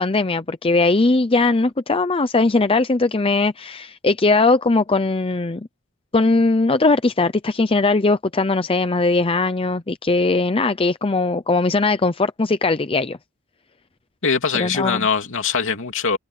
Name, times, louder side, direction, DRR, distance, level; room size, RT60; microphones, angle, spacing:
voice 1, 0.0-5.7 6.1-13.2 14.5-15.1, left 3 dB, 25° left, 0.6 m, -19 dB
voice 2, 14.2-16.2, left 5 dB, 60° left, 3.1 m, -22 dB
head